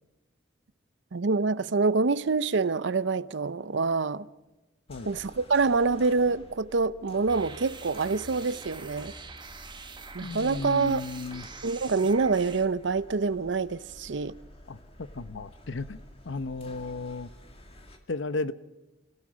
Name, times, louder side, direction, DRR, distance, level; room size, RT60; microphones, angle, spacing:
voice 1, 1.1-4.3 5.1-9.1 10.1-11.0 11.6-14.4, right 4 dB, 70° right, 0.7 m, -26 dB
sound 1, 4.9-18.0, left 1 dB, 30° left, 2.2 m, -50 dB
sound 2, 7.3-12.7, right 4 dB, 25° right, 1.4 m, -45 dB
voice 2, 10.2-11.5 14.7-16.0 16.3-17.3 18.1-18.5, left 3 dB, 75° left, 0.8 m, -34 dB
26.5 x 17.0 x 6.2 m
head